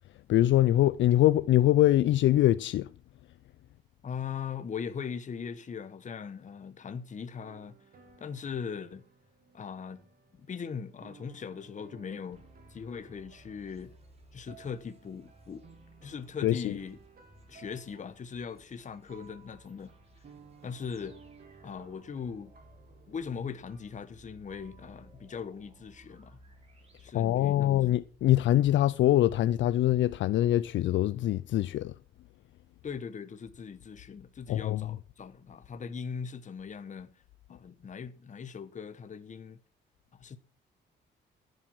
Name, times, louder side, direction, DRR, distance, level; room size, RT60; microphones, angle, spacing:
voice 1, 0.3-2.9 16.4-16.8 27.1-31.9 34.5-34.8, left 13 dB, 70° left, 0.5 m, -24 dB
voice 2, 4.0-7.8 8.2-9.0 9.5-10.0 10.3-12.4 12.7-13.9 14.3-15.6 16.0-17.0 17.5-19.9 20.6-21.2 21.6-22.5 23.1-26.4 27.0-27.8 32.8-37.2 37.5-39.6 40.1-40.4, left 6 dB, 40° left, 1.1 m, -40 dB
sound 1, 7.4-26.0, right 5 dB, 50° right, 2.9 m, -58 dB
sound 2, 12.3-27.9, right 1 dB, 30° right, 5.0 m, -59 dB
14.5 x 8.0 x 6.1 m
cardioid pair, 90°, 20 cm